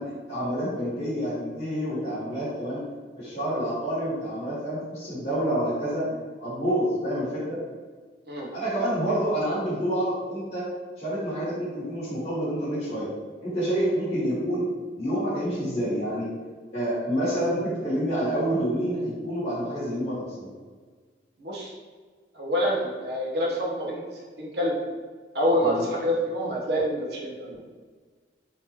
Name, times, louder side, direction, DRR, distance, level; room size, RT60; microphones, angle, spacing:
voice 1, 0.0-2.8 3.2-7.6 8.5-10.7 11.0-13.1 13.4-14.7 15.0-16.3 16.7-20.5 25.6-25.8, equal, 35° left, -13 dB, 1.2 m, -28 dB
voice 2, 21.4-21.7 22.3-24.0 24.4-24.8 25.3-27.6, equal, 60° right, -2 dB, 0.7 m, -26 dB
3.6 x 2.9 x 2.7 m, 1.5 s
head